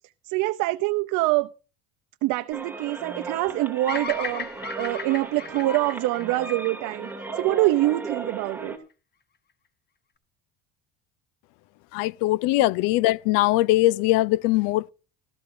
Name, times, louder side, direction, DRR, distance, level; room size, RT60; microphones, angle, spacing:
voice 1, 0.2-1.5 2.2-4.5 4.7-8.7, right 18 dB, 70° right, 0.7 m, -25 dB
sound 1, 2.5-8.8, right 3 dB, 5° right, 2.7 m, -36 dB
Bird vocalization bird call bird song, 3.9-8.2, left 6 dB, 30° left, 1.2 m, -37 dB
voice 2, 11.9-14.9, left 17 dB, 75° left, 0.6 m, -21 dB
17.0 x 13.5 x 2.7 m
cardioid pair, 115°, 33 cm